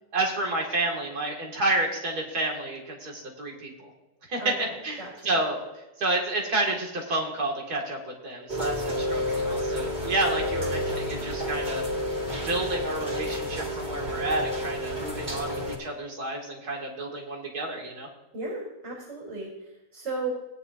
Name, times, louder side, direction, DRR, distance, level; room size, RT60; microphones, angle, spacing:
voice 1, 0.1-3.9 4.3-5.6 6.0-11.8 12.3-18.1, right 2 dB, 80° right, 0 dB, 2.8 m, -30 dB
voice 2, 4.4-5.4 18.3-20.3, right 3 dB, 50° right, -4 dB, 3.7 m, -36 dB
Rain, 8.5-15.8, equal, 30° right, 2.3 m, -30 dB
16.5 x 10.0 x 2.7 m, 0.98 s
omnidirectional pair, 1.7 m